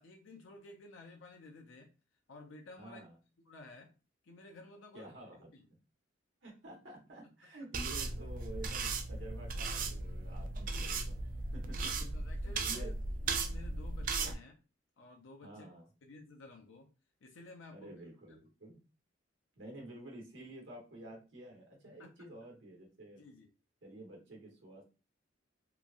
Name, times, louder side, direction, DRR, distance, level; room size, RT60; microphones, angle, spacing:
voice 1, 0.0-1.9 2.3-3.0 3.4-3.9 4.2-5.1 5.5-5.7 11.9-12.9 13.2-14.6 15.0-15.7 16.0-16.9 17.2-17.9 22.0-22.1 23.2-23.5, left 2 dB, 85° left, 2 dB, 0.5 m, -53 dB
voice 2, 2.8-3.2 4.9-5.5 6.4-11.9 12.4-13.0 15.4-15.9 17.7-18.8 19.6-23.2 23.8-24.8, right 1 dB, 70° right, -1 dB, 1.2 m, -50 dB
sound 1, 7.7-14.3, right 3 dB, 45° right, 0.4 m, -37 dB
3.0 x 2.3 x 2.5 m, 0.31 s
head